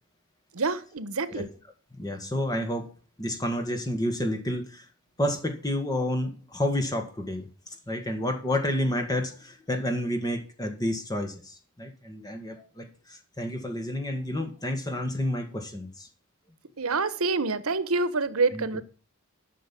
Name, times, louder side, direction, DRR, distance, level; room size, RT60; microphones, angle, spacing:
voice 1, 0.5-1.5 16.8-18.8, right 3 dB, 80° right, 15 dB, 1.1 m, -27 dB
voice 2, 1.9-2.9 3.2-4.9 5.2-16.1 18.5-18.7, left 1 dB, 15° left, 6 dB, 1.8 m, -30 dB
12.0 x 6.4 x 7.5 m, 0.38 s
head